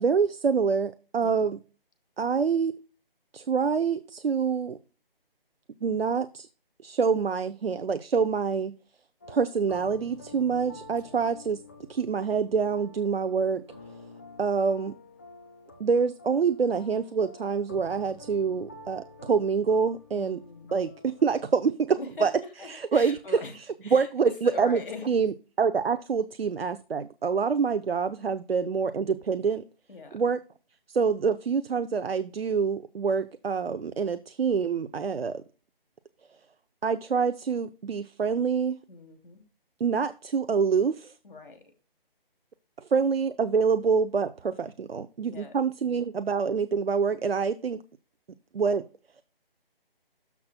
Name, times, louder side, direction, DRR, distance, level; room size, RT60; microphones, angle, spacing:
voice 1, 0.0-1.6 2.2-2.7 3.3-4.8 5.8-6.5 6.8-8.7 9.3-11.6 11.9-13.6 14.4-14.9 15.8-20.4 20.7-22.3 22.7-23.2 23.9-24.8 25.1-29.6 30.1-30.4 30.9-35.4 36.8-38.8 39.8-41.1 42.8-47.8 48.5-48.8, right 5 dB, 85° right, 12 dB, 0.7 m, -26 dB
voice 2, 1.2-1.6 10.3-11.2 20.1-20.8 22.0-23.5 23.8-25.2 29.9-30.3 38.9-39.4 41.2-41.6 45.2-45.5, left 4 dB, 65° left, 4 dB, 2.7 m, -42 dB
sound 1, 9.2-21.5, left 3 dB, 15° left, 0.7 m, -49 dB
13.0 x 6.0 x 2.2 m, 0.34 s
figure-of-eight pair, 165°, 29 cm